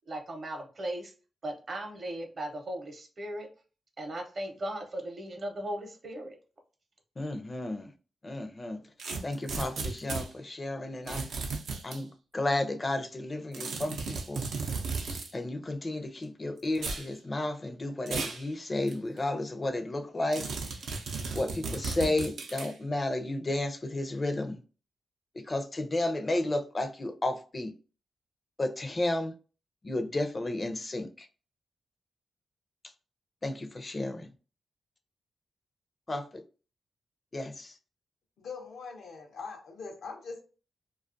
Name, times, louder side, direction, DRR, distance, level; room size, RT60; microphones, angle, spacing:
voice 1, 0.0-1.1 1.4-3.5 4.0-6.4, right 1 dB, 50° right, 0.7 m, -37 dB
voice 2, 7.2-7.9 8.2-8.8 9.2-11.3 11.8-12.1 12.3-14.4 15.3-20.5 21.3-24.6 25.4-27.7 28.6-29.3 29.8-31.3 33.4-34.3 36.1-36.4 37.3-37.7, left 2 dB, 30° left, 0.4 m, -32 dB
sound 1, 9.0-10.3 11.1-12.0 13.5-15.3 16.7-17.1 18.1-18.4 18.9-19.0 20.3-22.7, right 4 dB, 90° right, 0.5 m, -35 dB
voice 3, 38.4-40.4, left 4 dB, 85° left, 0.6 m, -42 dB
2.4 x 2.3 x 2.5 m
cardioid pair, 75°, 0 cm